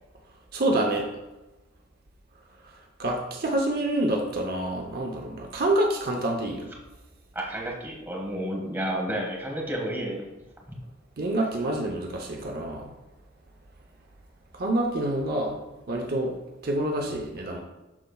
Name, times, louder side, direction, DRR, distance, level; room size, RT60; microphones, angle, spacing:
voice 1, 0.5-1.1 3.0-6.7 11.2-12.9 14.6-15.6 15.9-16.3 16.6-17.6, right 1 dB, 55° right, 1 dB, 0.8 m, -27 dB
voice 2, 7.3-10.2, right 1 dB, 10° right, -2 dB, 1.5 m, -31 dB
12.0 x 4.3 x 2.3 m, 1.1 s
head